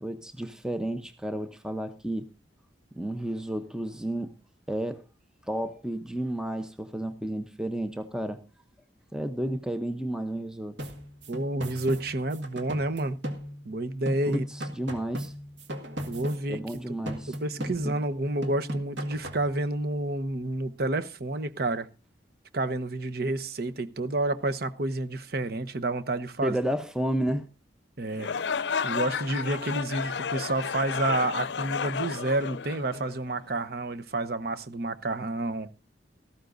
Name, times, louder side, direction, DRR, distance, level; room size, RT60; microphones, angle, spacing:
voice 1, 0.0-2.3 2.9-4.3 4.7-5.0 5.5-8.4 9.1-10.8 14.3-14.4 14.8-15.3 16.5-18.0 26.4-27.5, right 1 dB, 5° right, 0.7 m, -32 dB
sound 1, 10.8-13.8 14.1-16.8 17.1-18.1 18.4-19.5, equal, 85° right, 1.8 m, -38 dB
voice 2, 11.3-13.2 13.6-14.4 16.1-16.6 17.3-21.9 22.5-26.6 28.0-28.3 28.8-35.7, right 2 dB, 60° right, 1.0 m, -29 dB
sound 2, 28.1-33.4, left 6 dB, 75° left, 0.5 m, -32 dB
17.5 x 14.0 x 2.6 m
head